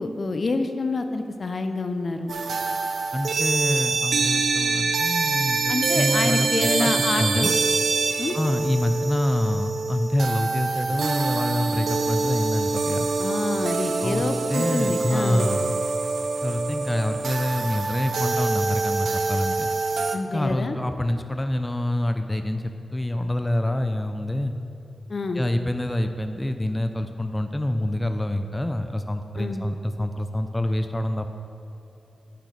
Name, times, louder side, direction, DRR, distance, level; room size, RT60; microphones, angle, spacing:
voice 1, 0.0-2.3 5.7-7.5 8.2-8.4 13.2-15.5 20.1-20.8 25.1-25.4 29.4-29.7, left 3 dB, 50° left, 7 dB, 0.6 m, -27 dB
sound 1, 2.3-20.2, right 4 dB, 75° right, 0.5 m, -25 dB
voice 2, 3.1-5.6 5.9-7.5 8.3-13.1 14.0-14.2 14.5-15.8 16.4-19.7 20.3-24.5 25.3-31.3, left 1 dB, 15° left, 7 dB, 0.5 m, -26 dB
9.2 x 6.0 x 5.2 m, 2.9 s
cardioid pair, 60°, 0 cm